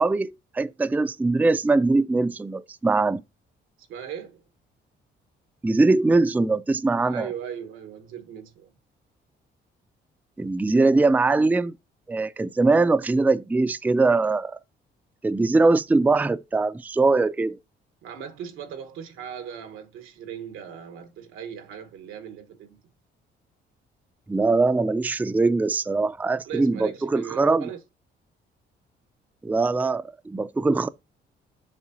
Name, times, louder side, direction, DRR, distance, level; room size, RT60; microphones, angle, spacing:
voice 1, 0.0-3.2 5.6-7.3 10.4-11.7 12.1-14.6 15.2-17.6 24.3-27.6 29.4-30.9, right 3 dB, 10° right, 0.3 m, -22 dB
voice 2, 3.9-4.4 7.1-8.7 18.0-22.8 26.4-27.8, right 8 dB, 90° right, 1.2 m, -38 dB
7.4 x 5.7 x 2.6 m
cardioid pair, 90°, 20 cm